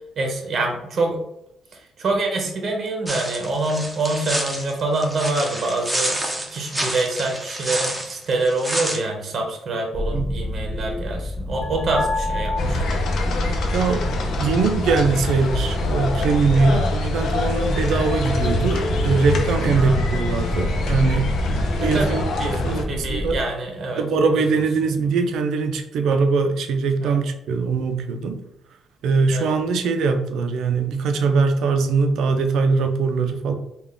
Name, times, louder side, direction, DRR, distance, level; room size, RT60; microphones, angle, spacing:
voice 1, 0.2-1.2 2.0-6.2 6.5-12.8 16.7-16.9 19.7-20.0 21.8-24.0 24.3-24.5 24.8-24.9 27.0-27.1 29.3-29.5, right 2 dB, 50° right, 2 dB, 0.8 m, -26 dB
sound 1, 3.1-9.0, right 1 dB, 10° right, 0.8 m, -28 dB
sound 2, 9.9-23.4, left 1 dB, 10° left, 0.4 m, -28 dB
sound 3, 12.6-22.8, left 1 dB, 70° left, 0.6 m, -25 dB
voice 2, 13.7-14.1 14.4-21.4 21.8-23.4 24.0-28.4 29.0-33.5, right 4 dB, 80° right, 7 dB, 0.5 m, -21 dB
3.7 x 2.3 x 3.5 m, 0.82 s
cardioid pair, 90°, 0 cm